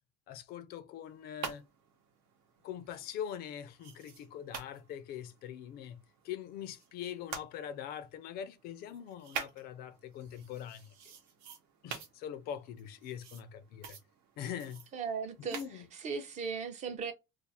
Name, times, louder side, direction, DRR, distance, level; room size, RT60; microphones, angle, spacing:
voice 1, 0.3-1.6 2.6-6.0 6.2-10.9 11.8-14.0 14.4-14.8 15.4-15.9, left 9 dB, 50° left, 0.4 m, -43 dB
sound 1, 1.0-7.4 7.9-16.5, right 7 dB, 80° right, 0.9 m, -48 dB
voice 2, 14.9-15.6 16.0-17.1, right 5 dB, 35° right, 0.5 m, -37 dB
2.4 x 2.3 x 4.0 m
cardioid pair, 170°, 20 cm